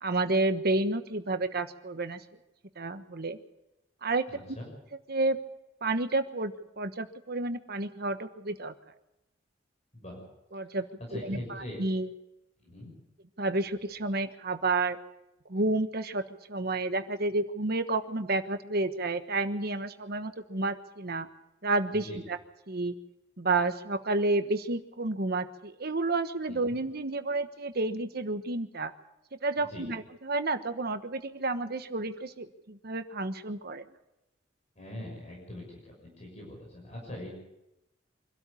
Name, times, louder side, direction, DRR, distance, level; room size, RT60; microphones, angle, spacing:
voice 1, 0.0-2.2 2.8-3.4 4.0-4.3 5.1-5.4 5.8-8.7 10.5-12.1 13.4-15.0 15.5-21.3 21.6-22.4 22.7-22.9 23.4-28.9 29.4-33.8, right 2 dB, 55° right, 10 dB, 1.3 m, -30 dB
voice 2, 4.3-4.7 9.9-10.2 11.1-11.8 12.6-12.9 21.9-22.2 26.5-26.6 29.6-29.9 34.7-37.4, left 1 dB, 35° left, -1 dB, 6.5 m, -42 dB
25.0 x 12.5 x 8.5 m, 0.90 s
head